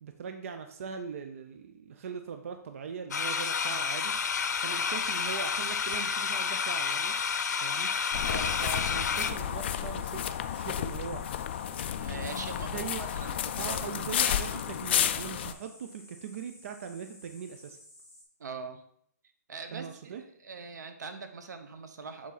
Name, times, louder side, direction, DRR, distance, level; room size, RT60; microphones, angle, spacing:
voice 1, 0.0-4.2 4.6-7.2 7.6-7.9 8.2-11.3 12.7-13.0 13.6-17.8 19.7-20.2, right 7 dB, 50° right, 7 dB, 0.6 m, -40 dB
sound 1, 3.1-9.3, left 6 dB, 80° left, 0.7 m, -30 dB
sound 2, 3.4-18.2, left 1 dB, 5° right, 2.4 m, -54 dB
sound 3, 8.1-15.5, left 10 dB, 40° left, 0.3 m, -32 dB
voice 2, 8.3-8.6 12.0-14.6 18.4-18.8 19.5-22.3, right 4 dB, 85° right, 8 dB, 1.0 m, -43 dB
7.5 x 4.1 x 4.0 m, 0.67 s
hypercardioid pair, 165°, 9 cm